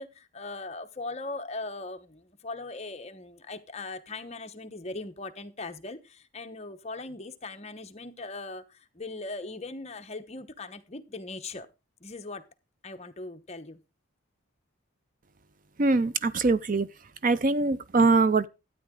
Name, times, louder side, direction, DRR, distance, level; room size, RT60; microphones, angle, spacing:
voice 1, 0.0-11.7 12.0-12.4 12.8-13.8, left 3 dB, 30° left, 1.0 m, -39 dB
voice 2, 15.8-16.9 17.2-18.5, right 3 dB, 40° right, 0.5 m, -23 dB
12.5 x 9.2 x 3.7 m
head